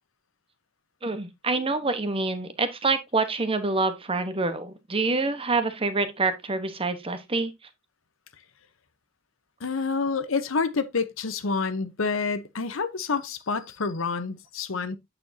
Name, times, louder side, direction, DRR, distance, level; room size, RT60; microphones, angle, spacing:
voice 1, 1.0-7.5, right 3 dB, 25° right, 1.1 m, -26 dB
voice 2, 9.6-15.0, left 4 dB, 70° left, 0.8 m, -28 dB
8.6 x 7.0 x 2.7 m
head